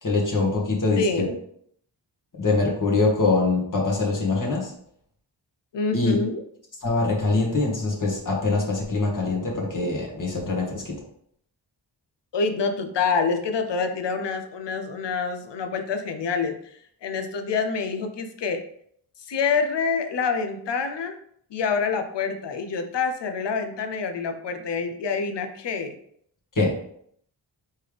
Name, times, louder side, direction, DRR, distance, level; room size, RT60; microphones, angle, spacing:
voice 1, 0.0-1.3 2.4-4.7 5.9-6.2 6.8-11.0 26.6-26.7, left 3 dB, 45° left, -2 dB, 1.7 m, -23 dB
voice 2, 1.0-1.4 5.7-6.4 12.3-18.6 19.3-21.2 21.5-26.0, left 5 dB, 70° left, 7 dB, 0.7 m, -27 dB
4.4 x 3.5 x 3.3 m, 0.66 s
cardioid pair, 55°, 44 cm